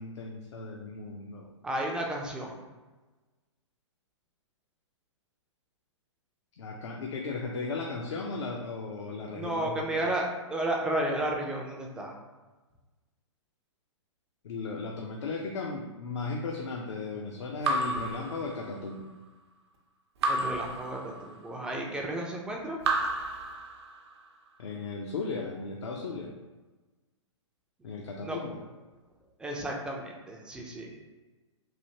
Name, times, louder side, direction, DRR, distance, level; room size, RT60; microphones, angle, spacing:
voice 1, 0.0-1.5 6.5-10.1 14.4-19.1 24.6-26.3 27.8-28.6, left 3 dB, 65° left, 0 dB, 0.4 m, -36 dB
voice 2, 1.6-2.6 9.3-12.2 20.3-22.8 28.2-28.4 29.4-31.1, right 1 dB, 5° right, 0 dB, 0.3 m, -33 dB
Raindrop / Drip, 17.6-19.0 20.2-21.6 22.8-24.2, right 2 dB, 60° right, 0.6 m, -32 dB
3.3 x 2.5 x 2.7 m, 1.2 s
figure-of-eight pair, 120°, 16 cm